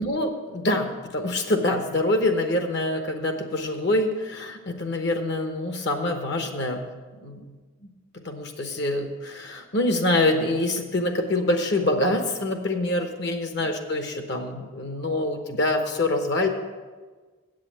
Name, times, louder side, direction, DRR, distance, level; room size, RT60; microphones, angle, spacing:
voice 1, 0.0-6.9 7.2-7.5 8.2-16.5, left 1 dB, 55° left, 5 dB, 1.0 m, -25 dB
8.0 x 7.6 x 7.5 m, 1.4 s
head